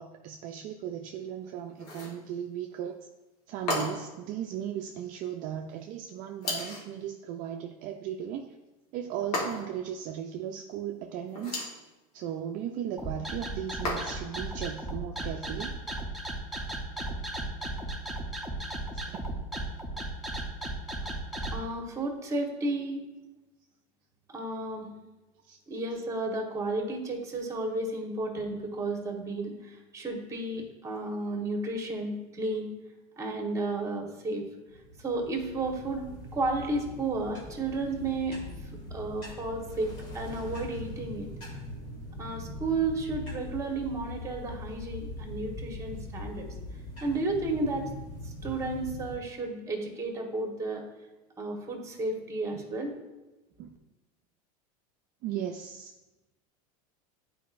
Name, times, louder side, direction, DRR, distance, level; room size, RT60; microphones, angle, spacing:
voice 1, 0.0-3.1 3.5-8.5 8.9-11.7 12.1-15.8 16.6-16.8 18.9-19.3 25.4-25.6 52.5-52.6 53.6-53.7 55.2-55.9, right 9 dB, 45° right, 3 dB, 0.4 m, -37 dB
sound 1, 1.8-2.2 3.7-4.2 6.4-6.9 9.3-9.9 11.3-11.8 13.8-14.4, left 2 dB, 85° left, 1.6 m, -33 dB
sound 2, 13.0-21.6, right 1 dB, ahead, 0.8 m, -35 dB
voice 2, 21.5-23.0 24.3-24.9 25.7-32.7 33.2-34.4 35.0-38.4 38.9-41.3 42.2-46.5 47.0-47.9 48.2-50.8 51.4-52.9, right 2 dB, 15° right, 1 dB, 1.2 m, -32 dB
sound 3, 34.7-49.2, left 1 dB, 45° left, 2.1 m, -41 dB
9.2 x 4.7 x 2.5 m, 1.1 s
supercardioid pair, 120°, 19 cm